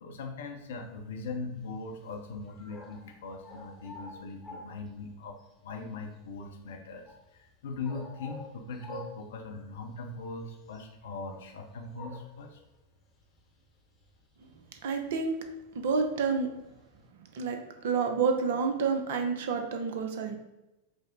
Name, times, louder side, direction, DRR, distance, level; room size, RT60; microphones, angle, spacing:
voice 1, 0.0-5.4 5.6-7.1 7.4-12.6, left 3 dB, 60° left, 3 dB, 0.6 m, -40 dB
sound 1, 0.7-17.1, left 2 dB, 15° left, 0.9 m, -52 dB
voice 2, 14.8-15.4 15.7-16.5 17.3-17.6 17.8-20.4, right 5 dB, 55° right, 5 dB, 0.5 m, -29 dB
5.0 x 2.0 x 3.7 m, 0.98 s
figure-of-eight pair, 90°, 0 cm